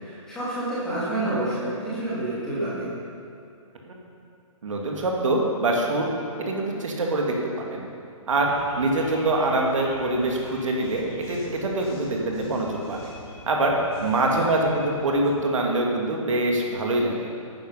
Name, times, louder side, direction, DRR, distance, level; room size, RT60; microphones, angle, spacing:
voice 1, 0.0-2.9 14.2-14.3, right 1 dB, 5° left, -11 dB, 2.1 m, -28 dB
voice 2, 4.6-6.1 6.4-7.9 8.3-13.1 13.5-13.7 14.0-17.3, right 2 dB, 65° right, 0 dB, 2.1 m, -24 dB
sound 1, 8.3-15.3, left 1 dB, 50° left, 3.1 m, -44 dB
11.0 x 9.6 x 5.6 m, 2.7 s
hypercardioid pair, 175°, 18 cm